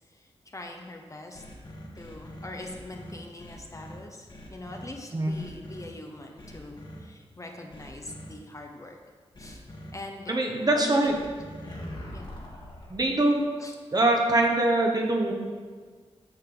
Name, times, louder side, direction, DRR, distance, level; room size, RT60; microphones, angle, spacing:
voice 1, 0.1-1.4 1.9-9.0 9.4-9.6 9.9-10.4 10.7-11.1 12.1-12.2 13.6-13.7, left 2 dB, 30° left, 2 dB, 1.0 m, -42 dB
sound 1, 1.3-4.0 4.3-4.9 5.3-5.9 6.4-7.0 7.7-8.3 9.3-9.9 11.1-13.0, left 1 dB, 45° left, 1.7 m, -43 dB
voice 2, 10.3-11.1 12.9-13.4 13.9-15.3, right 2 dB, 35° right, 1 dB, 1.3 m, -23 dB
8.9 x 6.6 x 3.9 m, 1.5 s
cardioid pair, 65°, 11 cm